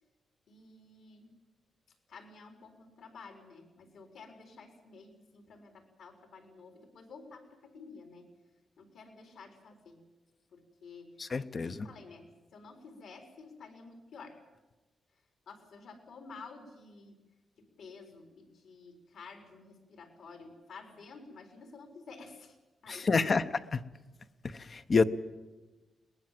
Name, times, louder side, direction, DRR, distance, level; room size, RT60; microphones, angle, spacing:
voice 1, 0.5-1.3 2.1-8.3 8.8-10.1 10.5-11.2 11.5-14.4 15.5-17.2 17.6-22.6 22.8-23.4, left 4 dB, 70° left, 3 dB, 4.2 m, -51 dB
voice 2, 11.2-11.9 22.9-23.4 24.4-25.0, left 4 dB, 35° left, 12 dB, 0.8 m, -28 dB
22.0 x 20.0 x 7.6 m, 1.2 s
wide cardioid pair, 145°, 0 cm